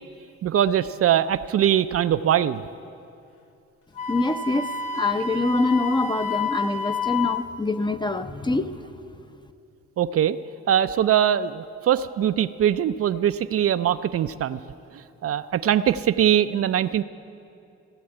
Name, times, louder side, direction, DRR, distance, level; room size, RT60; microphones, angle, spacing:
voice 1, 0.4-2.6 10.0-10.4 10.7-14.6 15.2-17.0, right 10 dB, 50° right, 11 dB, 0.4 m, -22 dB
Wind instrument woodwind instrument, 4.0-7.5, left 4 dB, 80° left, 1.1 m, -29 dB
voice 2, 4.1-4.7 4.9-8.8, left 3 dB, 15° left, 9 dB, 0.6 m, -25 dB
16.5 x 7.8 x 9.7 m, 2.6 s
cardioid pair, 90°, 30 cm